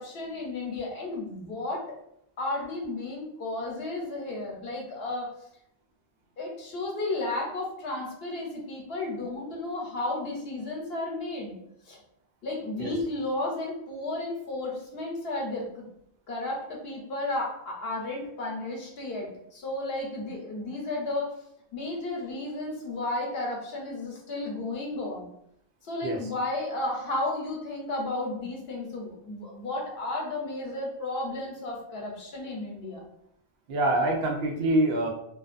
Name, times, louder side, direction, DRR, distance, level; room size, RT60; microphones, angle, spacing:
voice 1, 0.0-1.8 2.4-5.3 6.4-11.5 11.9-12.0 12.4-15.8 16.3-21.3 21.7-25.3 25.8-33.1, left 2 dB, 75° left, -1 dB, 1.0 m, -33 dB
voice 2, 33.7-35.1, right 1 dB, 75° right, 1 dB, 0.8 m, -25 dB
2.5 x 2.2 x 2.4 m, 0.73 s
omnidirectional pair, 1.0 m